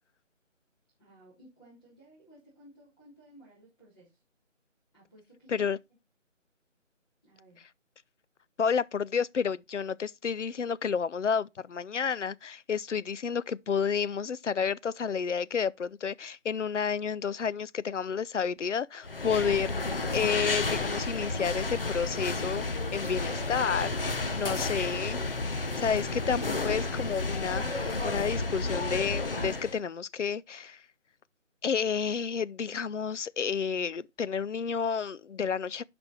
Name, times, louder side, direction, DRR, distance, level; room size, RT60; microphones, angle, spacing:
voice 1, 1.0-4.2 4.9-5.7 7.2-7.7, right 1 dB, 20° left, 3.7 m, -57 dB
voice 2, 8.6-25.2 25.8-30.8 31.6-35.8, left 6 dB, 70° left, 0.6 m, -31 dB
sound 1, 19.0-29.8, left 3 dB, 45° left, 1.0 m, -31 dB
10.5 x 5.3 x 4.2 m
figure-of-eight pair, 175°, 38 cm